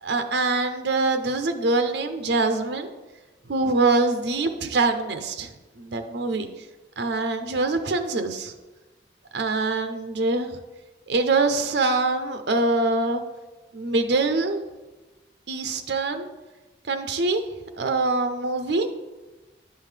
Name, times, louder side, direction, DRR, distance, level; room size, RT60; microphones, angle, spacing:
voice 1, 0.0-2.9 3.5-5.5 5.8-6.5 7.0-8.5 9.3-10.5 11.1-13.2 13.7-14.6 15.5-16.3 16.9-17.4 17.7-18.9, right 3 dB, 75° right, 7 dB, 0.6 m, -24 dB
10.0 x 5.5 x 3.3 m, 1.2 s
head